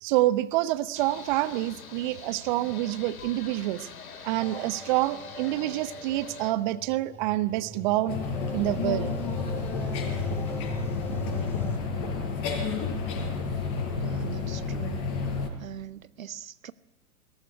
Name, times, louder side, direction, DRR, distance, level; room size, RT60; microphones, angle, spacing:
voice 1, 0.0-3.9 4.2-8.2 8.5-9.2, right 16 dB, 30° right, 1.0 m, -27 dB
sound 1, 0.9-6.5, left 6 dB, 65° left, 3.2 m, -45 dB
sound 2, 4.4-11.8, right 1 dB, 5° left, 2.6 m, -41 dB
sound 3, 8.1-15.5, left 5 dB, 30° left, 6.1 m, -30 dB
voice 2, 14.0-15.0 15.6-16.7, right 10 dB, 60° right, 0.9 m, -41 dB
22.0 x 19.0 x 9.8 m
figure-of-eight pair, 120°, 45 cm